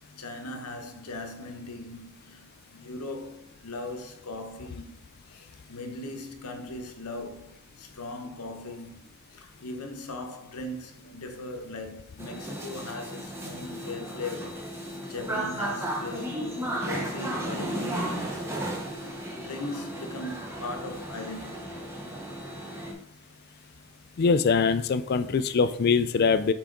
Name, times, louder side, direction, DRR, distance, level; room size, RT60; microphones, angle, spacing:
voice 1, 0.0-5.0 5.3-9.0 9.3-19.1 19.3-21.8, left 2 dB, 90° left, 0.9 m, -39 dB
sound 1, 12.2-22.9, right 1 dB, 10° right, 0.9 m, -34 dB
voice 2, 24.2-26.5, left 5 dB, 45° left, 0.3 m, -23 dB
5.9 x 4.8 x 3.8 m
head